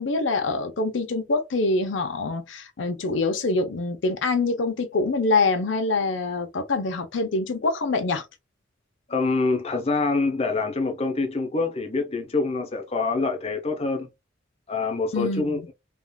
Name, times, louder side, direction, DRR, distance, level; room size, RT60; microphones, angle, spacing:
voice 1, 0.0-8.2 15.1-15.7, left 3 dB, 70° left, 0.6 m, -25 dB
voice 2, 9.1-14.1 14.7-15.6, left 3 dB, 30° left, 0.6 m, -25 dB
3.5 x 2.3 x 2.2 m
head